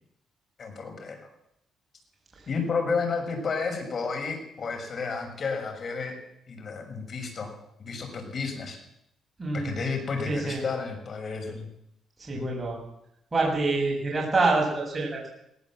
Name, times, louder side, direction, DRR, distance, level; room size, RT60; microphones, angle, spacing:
voice 1, 0.6-1.2 2.5-6.2 6.5-7.5 7.8-8.8 9.5-11.7 12.3-12.5, left 4 dB, 45° left, 4 dB, 6.2 m, -31 dB
voice 2, 9.4-9.8 10.3-10.6 12.2-12.8 13.3-15.3, right 3 dB, 20° right, -2 dB, 7.3 m, -26 dB
19.0 x 18.5 x 7.6 m, 0.80 s
cardioid pair, 120°, 0 cm